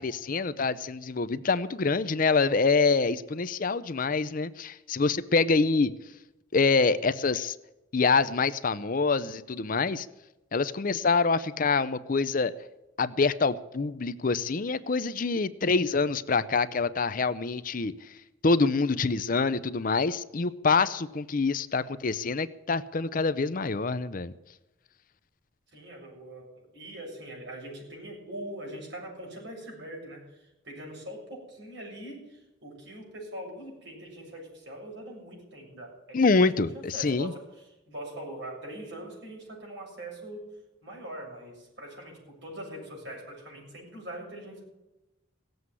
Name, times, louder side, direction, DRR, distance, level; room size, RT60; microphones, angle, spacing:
voice 1, 0.0-5.9 6.5-7.6 7.9-10.1 10.5-12.5 13.0-17.9 18.4-24.3 36.1-37.3, left 4 dB, 45° left, 14 dB, 0.6 m, -26 dB
voice 2, 25.7-40.5 40.8-44.6, right 1 dB, 60° right, -1 dB, 7.1 m, -42 dB
17.5 x 7.9 x 9.7 m, 0.99 s
head